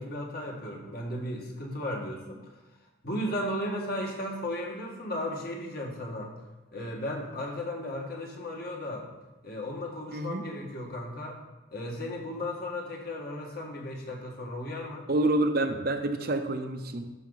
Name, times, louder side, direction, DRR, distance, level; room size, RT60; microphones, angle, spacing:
voice 1, 0.0-2.5 3.0-6.3 6.7-9.1 9.4-11.4 11.7-15.0, left 1 dB, 50° left, 0 dB, 1.7 m, -35 dB
voice 2, 10.1-10.4 15.1-17.1, right 2 dB, 50° right, 6 dB, 0.7 m, -28 dB
12.0 x 6.0 x 4.0 m, 1.1 s
head